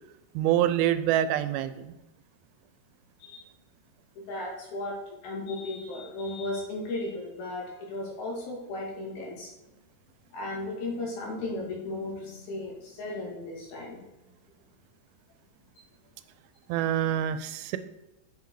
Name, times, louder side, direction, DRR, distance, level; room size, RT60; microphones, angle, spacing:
voice 1, 0.3-1.9 16.7-17.8, right 11 dB, 85° right, 12 dB, 2.4 m, -26 dB
voice 2, 4.3-5.0 5.2-9.5 10.3-14.0, left 2 dB, 80° left, -2 dB, 4.3 m, -35 dB
7.9 x 7.0 x 4.8 m, 0.98 s
omnidirectional pair, 4.3 m